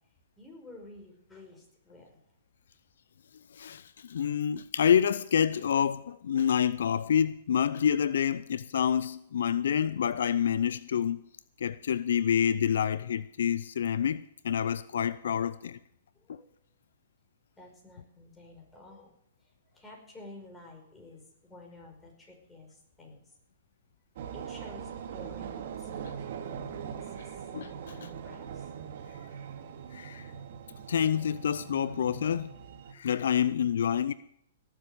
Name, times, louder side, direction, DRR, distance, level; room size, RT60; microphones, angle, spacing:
voice 1, 0.4-2.2 16.1-16.5 17.6-19.1 19.7-23.2 24.3-27.5 27.9-28.7, left 2 dB, 10° left, 5.1 m, -51 dB
voice 2, 3.5-11.2 11.6-15.8 16.3-16.4 27.5-28.1 29.9-30.3 30.9-32.6 32.9-34.1, left 8 dB, 75° left, 0.5 m, -28 dB
sound 1, 24.2-32.9, right 8 dB, 60° right, 2.2 m, -41 dB
18.0 x 7.4 x 7.9 m
hypercardioid pair, 130°, 0 cm